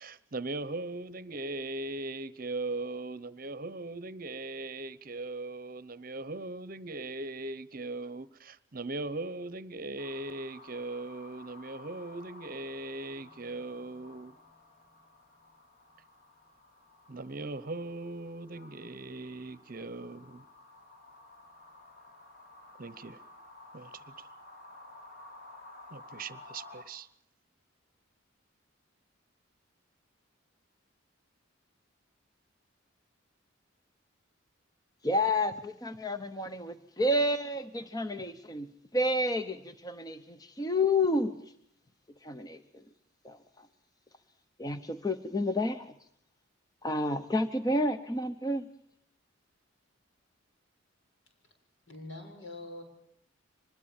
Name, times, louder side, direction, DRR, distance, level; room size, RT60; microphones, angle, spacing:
voice 1, 0.0-14.3 17.1-20.4 22.8-23.2 23.7-24.3 25.9-27.1, right 2 dB, 45° right, 0.9 m, -39 dB
sound 1, 10.0-26.8, left 2 dB, 45° left, 3.7 m, -53 dB
voice 2, 35.0-38.7 38.9-41.3 42.2-42.6 43.2-43.7 44.6-45.9 46.8-48.7, left 1 dB, 20° left, 0.8 m, -30 dB
voice 3, 51.9-52.8, left 2 dB, 70° left, 7.2 m, -44 dB
24.5 x 21.0 x 7.2 m
head